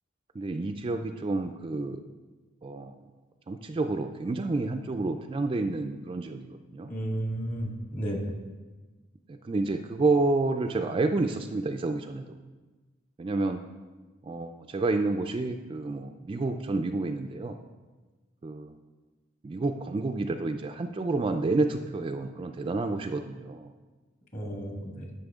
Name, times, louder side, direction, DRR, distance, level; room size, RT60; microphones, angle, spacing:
voice 1, 0.4-2.0 2.6-2.9 3.5-6.9 9.3-12.2 13.2-13.6 14.2-17.6 18.4-18.7 19.4-23.7, right 3 dB, 25° right, 6 dB, 0.3 m, -29 dB
voice 2, 6.9-8.2 24.3-25.0, right 1 dB, 40° left, 0 dB, 1.7 m, -33 dB
11.0 x 5.6 x 3.6 m, 1.3 s
head